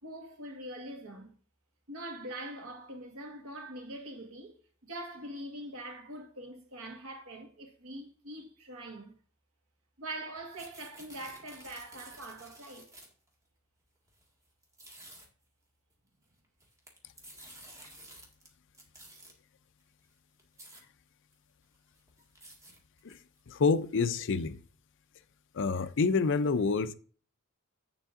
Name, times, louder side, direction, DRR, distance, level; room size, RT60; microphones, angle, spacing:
voice 1, 0.0-1.3 1.9-4.5 4.8-9.2 10.0-12.9, right 1 dB, 70° right, 1.6 m, -43 dB
sound 1, 10.4-13.3 14.1-14.2 14.6-15.3 16.4-18.5 18.7-19.3 20.0-20.1 20.4-20.8 21.3-21.4 21.7-23.4, right 1 dB, 15° right, 1.7 m, -52 dB
voice 2, 23.5-24.6 25.5-26.9, left 4 dB, 60° left, 0.5 m, -27 dB
8.0 x 7.0 x 3.7 m
head